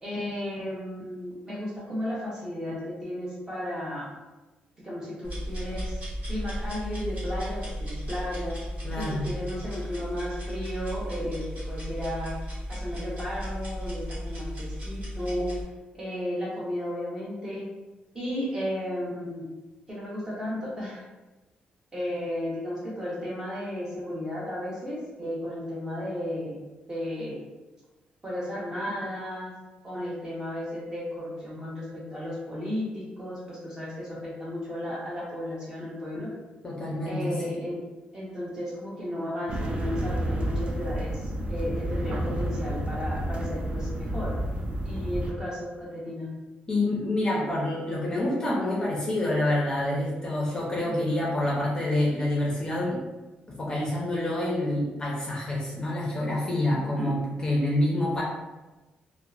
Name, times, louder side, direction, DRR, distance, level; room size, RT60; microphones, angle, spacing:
voice 1, 0.0-4.1 4.8-6.0 6.3-8.6 9.0-15.6 15.9-17.7 18.1-19.5 19.9-21.0 21.9-26.6 26.9-27.4 28.2-29.5 29.8-36.3 37.0-37.8 38.1-44.3 44.8-46.3 56.7-57.1, left 1 dB, 20° right, -6 dB, 0.8 m, -34 dB
sound 1, 5.2-15.6, equal, 55° right, 1.1 m, -35 dB
voice 2, 8.8-9.3 36.6-37.6 46.7-53.0 53.6-58.2, left 1 dB, 25° left, -5 dB, 0.5 m, -27 dB
sound 2, 39.5-45.3, right 1 dB, 35° right, 0.3 m, -30 dB
2.7 x 2.0 x 2.4 m, 1.1 s
cardioid pair, 135°, 3 cm